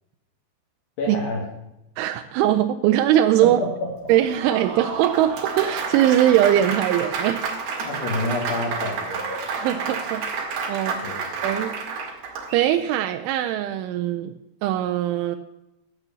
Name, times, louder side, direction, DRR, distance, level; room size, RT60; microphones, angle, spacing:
voice 1, 1.0-1.4 3.4-3.9 7.8-9.3 11.0-11.2, left 2 dB, 65° left, -3 dB, 4.2 m, -28 dB
voice 2, 2.0-3.6 4.1-7.8 9.5-10.3 10.7-11.1 11.4-11.8 12.5-14.3 14.6-15.4, right 12 dB, 90° right, 5 dB, 3.1 m, -21 dB
Applause, 4.1-12.8, right 5 dB, 60° right, 3.5 m, -30 dB
12.5 x 8.3 x 6.8 m, 0.91 s
omnidirectional pair, 5.3 m